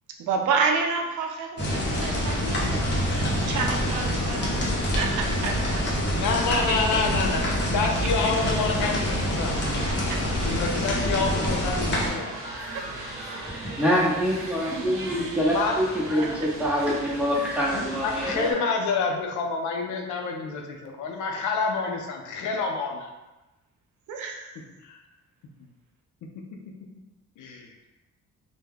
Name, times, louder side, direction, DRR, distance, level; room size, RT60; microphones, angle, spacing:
voice 1, 0.2-7.9 10.1-10.2 12.7-12.8 14.3-14.8 16.2-16.3 16.7-17.2 18.5-18.6 24.1-24.6, right 5 dB, 75° right, 2 dB, 0.5 m, -31 dB
sound 1, 1.6-12.1, equal, 35° left, 0.8 m, -26 dB
voice 2, 6.2-7.4 7.7-9.6 10.4-12.3 15.5-15.8 17.7-23.1 24.8-25.0 27.4-27.7, left 4 dB, 80° left, 2 dB, 0.5 m, -27 dB
movie courtyard lameride, 8.2-18.5, right 1 dB, 45° right, 0.7 m, -38 dB
voice 3, 13.5-18.6, equal, 5° right, -6 dB, 0.8 m, -25 dB
2.2 x 2.1 x 3.3 m, 1.0 s
cardioid pair, 90°, 30 cm